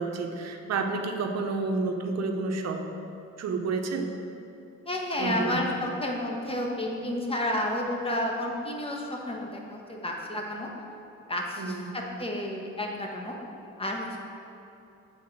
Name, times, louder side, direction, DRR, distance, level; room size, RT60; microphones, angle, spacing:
voice 1, 0.0-2.8 3.4-4.1 5.2-5.6 11.6-11.9, right 3 dB, 60° right, 4 dB, 0.9 m, -30 dB
voice 2, 4.9-10.7 11.3-13.4 13.8-14.2, left 1 dB, 20° left, 0 dB, 1.3 m, -31 dB
8.0 x 4.2 x 6.4 m, 2.9 s
cardioid pair, 90°, 30 cm